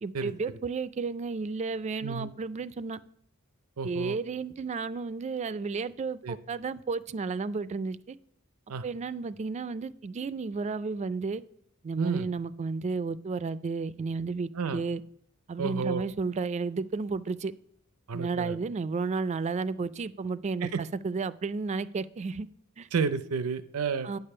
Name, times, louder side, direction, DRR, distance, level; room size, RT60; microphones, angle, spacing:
voice 1, 0.0-3.0 3.8-8.2 8.8-11.4 11.8-15.0 15.5-17.5 18.1-22.5 22.8-22.9 24.0-24.2, right 4 dB, 30° right, 16 dB, 0.3 m, -32 dB
voice 2, 2.0-2.3 3.8-4.2 6.2-6.4 8.7-8.8 12.0-12.3 14.5-14.8 15.6-16.1 18.1-18.6 20.6-20.8 22.9-24.1, right 5 dB, 85° right, 12 dB, 0.5 m, -31 dB
9.4 x 6.8 x 5.5 m, 0.68 s
head